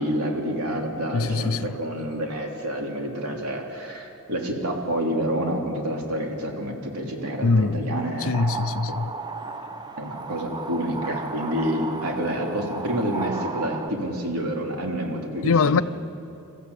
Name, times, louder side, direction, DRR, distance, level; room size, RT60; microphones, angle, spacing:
voice 1, 0.0-8.5 10.0-15.8, right 1 dB, 85° right, 3.4 m, -28 dB
voice 2, 1.1-1.7 7.4-7.9 8.2-9.1 15.4-15.8, left 4 dB, 65° left, 0.6 m, -22 dB
sound 1, 8.0-13.9, right 3 dB, 20° right, 0.9 m, -34 dB
27.0 x 14.5 x 8.3 m
head